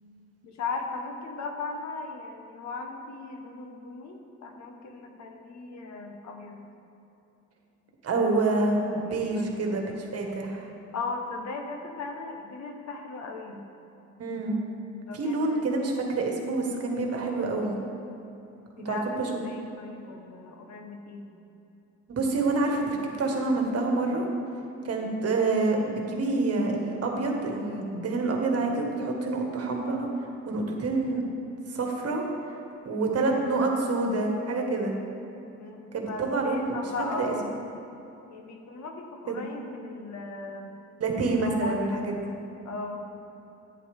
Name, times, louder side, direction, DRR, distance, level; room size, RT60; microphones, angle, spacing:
voice 1, 0.4-6.6 8.3-9.6 10.9-13.6 15.1-15.8 18.8-21.3 35.6-37.6 38.3-40.8 41.2-42.3 42.6-43.1, left 3 dB, 65° left, 3 dB, 1.2 m, -37 dB
voice 2, 8.0-10.7 14.2-14.6 15.1-17.8 18.8-19.3 22.1-24.2 24.8-30.1 30.4-31.2 31.7-32.2 32.8-34.9 35.9-36.8 37.1-37.3 39.3-39.4 41.0-42.2, right 3 dB, 55° right, 1 dB, 1.6 m, -27 dB
11.0 x 9.2 x 3.5 m, 2.9 s
cardioid pair, 90°, 30 cm